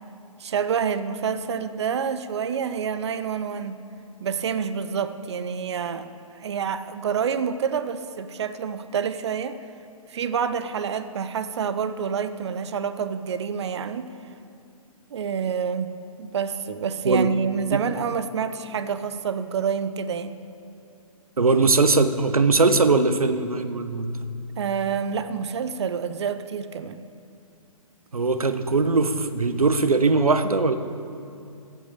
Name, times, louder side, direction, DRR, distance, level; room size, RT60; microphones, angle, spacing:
voice 1, 0.4-3.8 4.2-9.6 10.1-14.1 15.1-15.9 16.2-20.4 24.6-27.0, right 7 dB, 50° right, 12 dB, 0.7 m, -28 dB
voice 2, 21.4-24.3 28.1-30.8, right 3 dB, 80° right, 11 dB, 1.0 m, -20 dB
15.5 x 8.2 x 6.6 m, 2.5 s
figure-of-eight pair, 130°, 18 cm